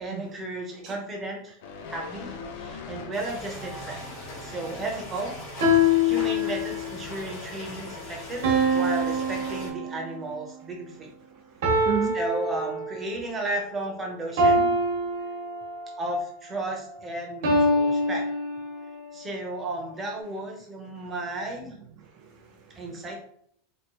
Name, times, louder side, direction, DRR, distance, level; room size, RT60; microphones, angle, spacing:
voice 1, 0.0-1.6 1.9-5.4 6.0-11.1 11.6-11.9 12.1-14.7 16.0-18.3 19.1-21.8 22.7-23.2, right 1 dB, 15° right, 1 dB, 0.8 m, -34 dB
sound 1, 1.6-3.7 4.1-4.3, left 5 dB, 70° left, 0.5 m, -40 dB
sound 2, 3.1-9.7, left 1 dB, 45° left, 1.4 m, -40 dB
sound 3, 3.6-4.1 5.6-7.1 8.4-10.3 11.6-13.2 14.4-16.0 17.4-19.0, left 1 dB, 70° right, 1.1 m, -25 dB
voice 2, 11.3-12.2 21.0-21.1 22.0-23.0, right 7 dB, 50° right, 2 dB, 0.4 m, -35 dB
3.0 x 2.9 x 3.0 m, 0.66 s
supercardioid pair, 145°, 0 cm